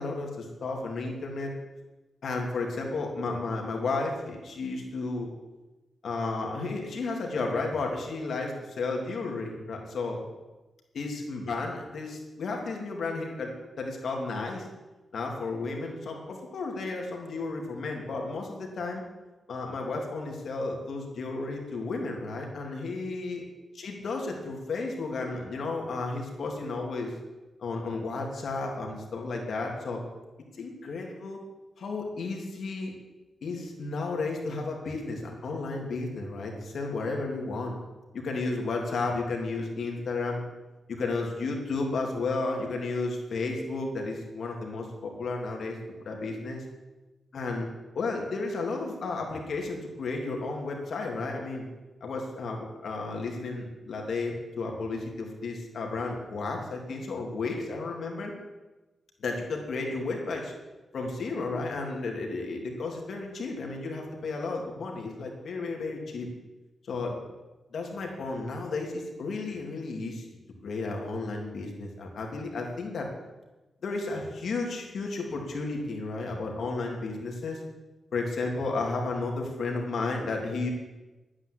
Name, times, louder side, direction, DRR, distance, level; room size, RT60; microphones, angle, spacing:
voice 1, 0.0-1.5 2.2-5.3 6.0-10.2 10.9-14.7 15.1-19.0 19.5-23.4 23.7-27.1 27.6-30.0 30.6-31.4 31.8-32.9 33.4-37.7 38.1-40.4 40.9-45.8 46.0-46.6 47.3-47.7 47.9-51.7 52.0-58.3 59.2-60.5 60.9-66.3 66.8-67.2 67.7-70.3 70.6-73.1 73.8-77.6 78.1-80.7, left 3 dB, 65° left, 1 dB, 3.0 m, -33 dB
12.0 x 9.7 x 8.4 m, 1.1 s
wide cardioid pair, 145°, 0 cm